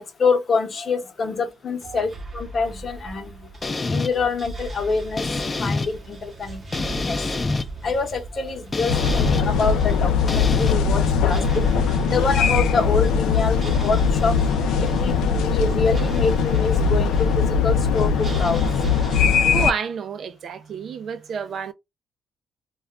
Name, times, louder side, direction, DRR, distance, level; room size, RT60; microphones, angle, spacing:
voice 1, 0.2-2.1 2.3-3.3 3.9-5.2 5.6-6.6 7.0-7.2 7.8-11.6 12.1-13.6 13.8-14.3 14.8-18.6, left 4 dB, 45° left, 0.8 m, -25 dB
sound 1, 1.2-19.4, right 2 dB, 30° right, 0.8 m, -37 dB
sound 2, 3.6-4.1 5.2-5.9 6.7-7.7 8.7-9.4 10.3-10.7, left 3 dB, 25° left, 0.4 m, -25 dB
sound 3, 8.9-19.7, left 6 dB, 85° left, 0.4 m, -20 dB
voice 2, 19.5-21.7, right 6 dB, 60° right, 0.4 m, -30 dB
2.2 x 2.2 x 3.5 m
cardioid pair, 90°, 0 cm